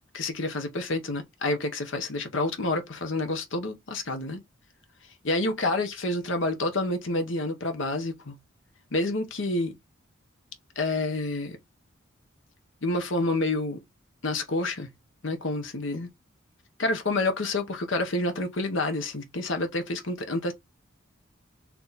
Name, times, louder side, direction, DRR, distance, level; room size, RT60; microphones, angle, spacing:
voice 1, 0.1-4.4 5.2-8.4 8.9-9.7 10.8-11.6 12.8-13.8 14.2-14.9 15.2-16.1 16.8-20.5, left 2 dB, 65° left, 1.0 m, -28 dB
4.6 x 2.8 x 3.9 m
head